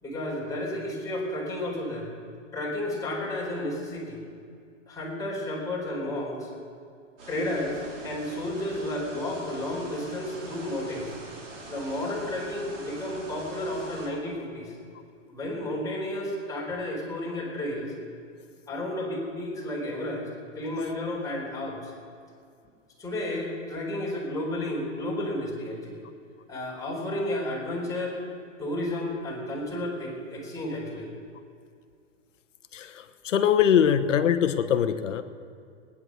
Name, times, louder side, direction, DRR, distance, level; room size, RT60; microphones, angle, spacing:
voice 1, 0.0-2.1 2.5-4.2 4.9-6.5 7.3-11.1 11.7-14.7 15.3-17.9 18.7-20.3 20.5-21.9 23.0-26.0 26.5-28.2 28.6-31.1, left 1 dB, 10° left, -4 dB, 4.4 m, -32 dB
sound 1, 7.2-14.1, right 2 dB, 75° right, 4.1 m, -44 dB
voice 2, 32.7-35.2, left 9 dB, 75° left, 11 dB, 1.2 m, -22 dB
19.0 x 9.9 x 6.5 m, 2.3 s
hypercardioid pair, 130°, 37 cm